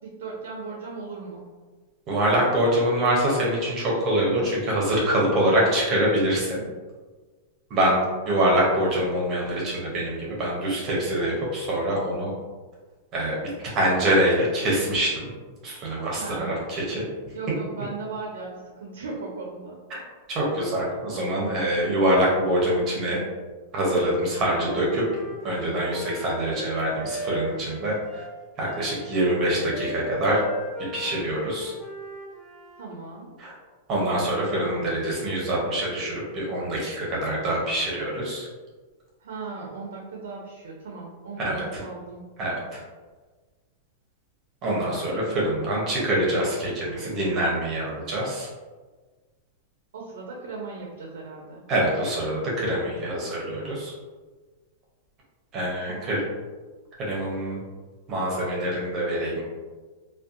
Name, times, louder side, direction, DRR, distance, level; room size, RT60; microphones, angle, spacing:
voice 1, 0.0-1.4 7.8-8.0 16.2-16.7 17.3-19.8 32.8-33.3 39.2-42.2 49.9-51.6 55.9-56.3, right 4 dB, 85° right, -1 dB, 0.4 m, -37 dB
voice 2, 2.1-6.6 7.7-12.3 13.1-13.4 13.6-15.3 15.6-17.1 20.3-23.2 23.7-25.0 25.4-28.2 28.6-30.4 30.9-31.7 33.4-33.5 33.9-38.5 41.4-41.6 42.4-42.8 44.6-48.5 51.7-53.9 55.5-56.2 57.0-57.6 58.1-59.4, right 1 dB, 30° right, -4 dB, 0.7 m, -25 dB
Wind instrument woodwind instrument, 24.3-32.8, right 1 dB, 10° left, 0.4 m, -38 dB
2.6 x 2.2 x 2.4 m, 1.4 s
supercardioid pair, 145°, 0 cm